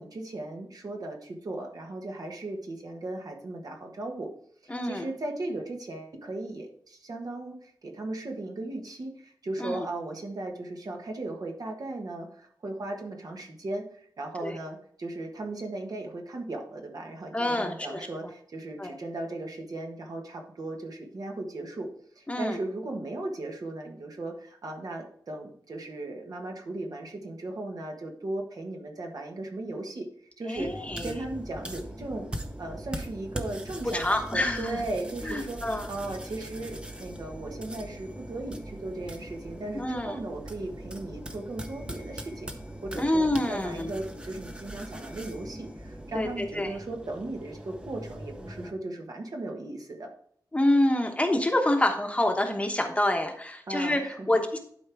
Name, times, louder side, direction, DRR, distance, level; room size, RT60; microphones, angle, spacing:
voice 1, 0.0-4.3 4.6-21.9 22.1-30.1 30.4-30.7 31.0-32.3 32.6-42.5 42.8-50.1 53.7-54.4, right 2 dB, 60° right, 2 dB, 1.4 m, -37 dB
voice 2, 4.7-5.1 9.6-9.9 14.4-14.6 17.3-18.1 18.8-18.9 22.3-22.6 30.4-31.2 33.9-34.8 35.2-35.9 39.7-40.2 43.0-44.0 46.1-46.7 50.5-54.6, left 1 dB, 15° left, 4 dB, 1.0 m, -27 dB
sound 1, 30.6-48.7, right 1 dB, 15° right, 0.8 m, -41 dB
11.5 x 4.6 x 3.5 m, 0.62 s
wide cardioid pair, 130°, 7 cm